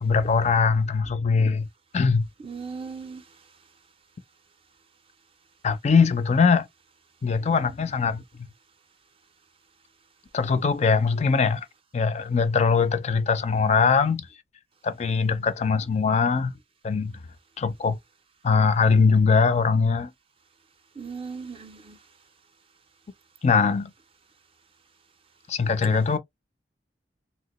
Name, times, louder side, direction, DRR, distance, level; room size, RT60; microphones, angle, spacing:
voice 1, 0.0-1.7 1.9-2.3 5.6-6.7 7.2-8.2 10.3-11.7 11.9-14.3 14.8-16.5 16.8-17.1 17.6-18.0 18.4-20.1 23.4-23.9 25.5-26.2, left 5 dB, 40° left, 0.4 m, -21 dB
voice 2, 2.4-3.2 21.0-22.0, right 5 dB, 30° right, 0.5 m, -37 dB
2.8 x 2.8 x 2.9 m
head